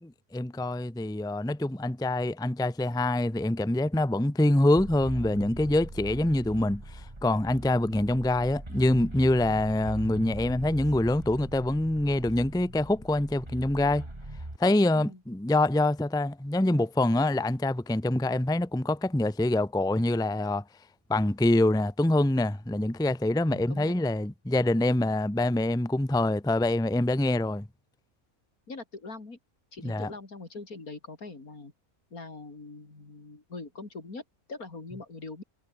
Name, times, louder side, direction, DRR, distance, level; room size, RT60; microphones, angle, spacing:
voice 1, 0.0-14.1 14.6-20.6 21.1-27.7 29.8-30.1, left 1 dB, 5° left, 0.9 m, -25 dB
sound 1, 4.8-14.6, right 1 dB, 20° right, 3.2 m, -41 dB
voice 2, 23.4-23.9 28.7-29.4 29.7-31.7 32.1-34.2 34.5-35.4, left 3 dB, 70° left, 4.3 m, -42 dB
omnidirectional pair, 1.6 m